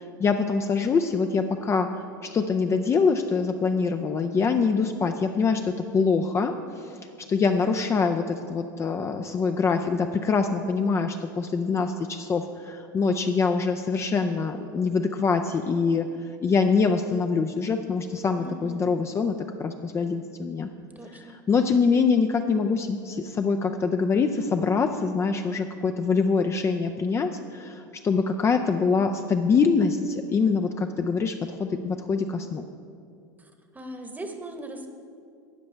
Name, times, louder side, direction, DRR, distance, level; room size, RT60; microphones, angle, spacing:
voice 1, 0.0-1.9 2.2-6.9 7.3-16.1 16.4-20.7 21.3-32.7, left 5 dB, 25° left, 6 dB, 0.4 m, -24 dB
voice 2, 18.4-18.8 20.9-21.4 33.4-34.9, right 1 dB, 15° right, 5 dB, 1.1 m, -39 dB
12.5 x 8.6 x 3.3 m, 2.4 s
hypercardioid pair, 95°, 11 cm